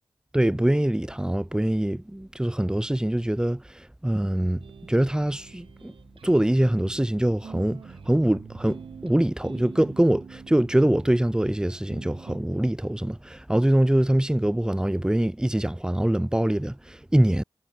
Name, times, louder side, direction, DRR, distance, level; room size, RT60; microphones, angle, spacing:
voice 1, 0.3-4.6 4.9-5.9 6.2-17.4, right 1 dB, 10° right, 0.5 m, -24 dB
sound 1, 4.4-12.4, right 6 dB, 80° right, 0.6 m, -45 dB
cardioid pair, 40°, 9 cm